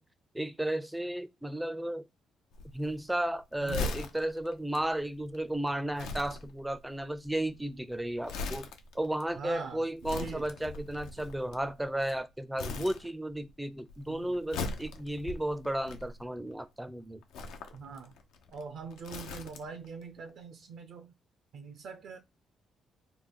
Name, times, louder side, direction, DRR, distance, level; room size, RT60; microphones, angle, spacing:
voice 1, 0.3-2.0 2.7-8.7 8.9-17.2, right 1 dB, 5° right, 0.4 m, -34 dB
Crumpling crinkling, 2.5-12.2 12.6-13.5 13.8-16.5 17.2-19.9 20.2-20.3, left 3 dB, 90° left, 0.5 m, -40 dB
voice 2, 3.6-4.0 9.4-10.5 14.1-14.4 17.7-18.1 18.5-21.1 21.5-22.2, right 5 dB, 65° right, 0.5 m, -43 dB
3.2 x 2.2 x 3.7 m
cardioid pair, 90°, 0 cm